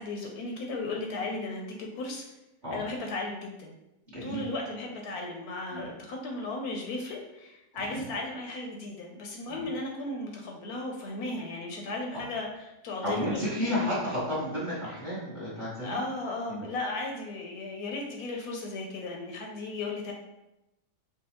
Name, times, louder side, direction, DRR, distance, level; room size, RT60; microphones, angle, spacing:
voice 1, 0.0-2.2 2.7-3.7 4.2-12.5 12.8-13.9 15.8-20.1, left 2 dB, 75° left, 1 dB, 1.0 m, -35 dB
voice 2, 4.1-4.5 5.7-5.9 7.7-8.0 9.5-9.6 12.1-12.2 13.0-16.0 16.5-16.6, left 1 dB, 35° right, -8 dB, 0.9 m, -32 dB
4.6 x 2.3 x 2.9 m, 0.94 s
omnidirectional pair, 1.8 m